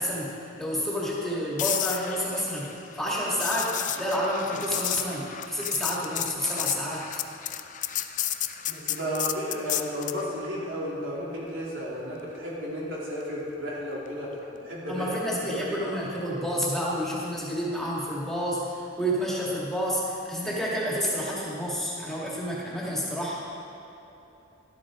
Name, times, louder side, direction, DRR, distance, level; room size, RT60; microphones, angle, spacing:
voice 1, 0.0-7.2 14.9-23.5, equal, ahead, -6 dB, 2.1 m, -29 dB
sound 1, 1.6-10.2 14.4-14.7, left 11 dB, 40° left, 0.4 m, -32 dB
voice 2, 8.7-14.3 14.6-15.8, equal, 85° right, -6 dB, 3.1 m, -33 dB
13.5 x 12.0 x 3.8 m, 3.0 s
head